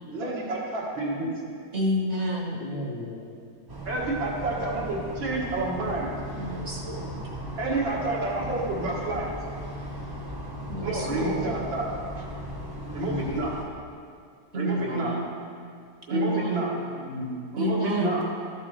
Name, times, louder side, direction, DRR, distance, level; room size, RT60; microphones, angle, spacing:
voice 1, 0.1-1.3 3.9-6.1 7.6-9.3 10.8-11.8 12.9-13.6 14.5-15.2 16.1-16.7 17.5-18.3, right 2 dB, 80° right, -4 dB, 2.4 m, -29 dB
voice 2, 1.7-2.8 6.3-7.0 10.7-11.6 14.5-15.4 16.1-16.8 17.6-18.3, equal, 45° right, -2 dB, 1.2 m, -30 dB
voice 3, 2.6-3.4 12.9-13.4 14.6-15.1 17.0-17.4, left 1 dB, 70° left, 0 dB, 1.6 m, -35 dB
sound 1, 3.7-13.6, equal, 25° right, 0.5 m, -37 dB
12.5 x 7.3 x 3.3 m, 2.3 s
omnidirectional pair, 2.1 m